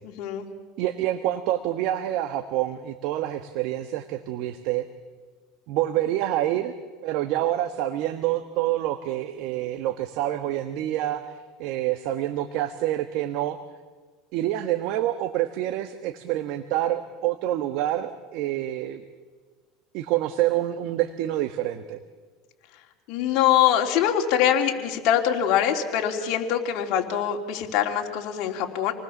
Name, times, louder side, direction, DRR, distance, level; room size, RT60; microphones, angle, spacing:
voice 1, 0.0-0.5 23.1-28.9, left 10 dB, 60° left, 2 dB, 3.3 m, -23 dB
voice 2, 0.8-4.9 5.7-6.7 7.0-11.3 11.6-13.6 14.3-19.0 19.9-22.0, right 13 dB, 65° right, 9 dB, 1.3 m, -27 dB
27.5 x 19.5 x 7.2 m, 1.4 s
supercardioid pair, 125°, 0 cm